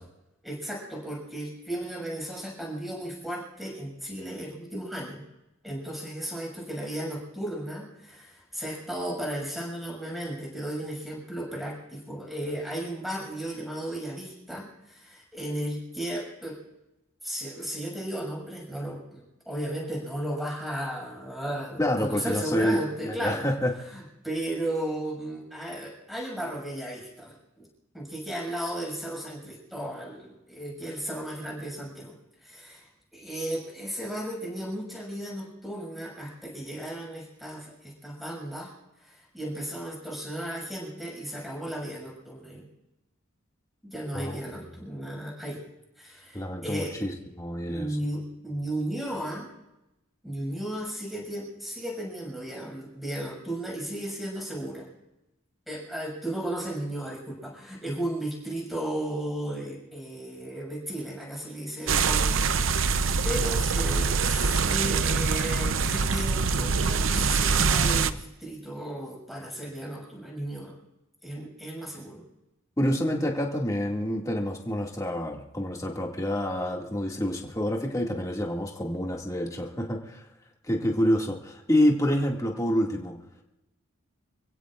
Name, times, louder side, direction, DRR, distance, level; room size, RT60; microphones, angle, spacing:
voice 1, 0.4-5.2 5.6-16.6 17.2-23.5 23.9-27.7 27.9-32.1 32.4-38.7 39.0-42.6 43.8-45.6 46.0-47.0 47.7-49.5 50.2-54.9 55.7-70.7 71.2-72.2, right 1 dB, ahead, -2 dB, 6.7 m, -35 dB
voice 2, 21.8-22.8 23.0-23.7 44.1-44.3 46.3-47.9 72.8-80.2 80.6-83.2, equal, 15° left, -1 dB, 2.3 m, -27 dB
sound 1, 61.9-68.1, right 5 dB, 70° right, 0.7 m, -24 dB
28.0 x 16.0 x 2.6 m, 0.92 s
head